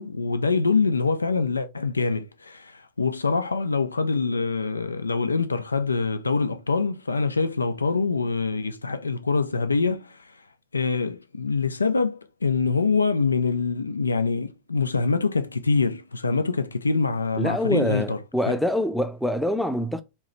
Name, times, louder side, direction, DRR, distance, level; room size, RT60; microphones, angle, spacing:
voice 1, 0.0-10.4 10.7-18.2 18.5-18.6, left 4 dB, 80° left, 0.3 m, -25 dB
voice 2, 17.4-20.0, equal, ahead, 0.5 m, -25 dB
3.8 x 2.8 x 3.1 m
figure-of-eight pair, 90°, 0 cm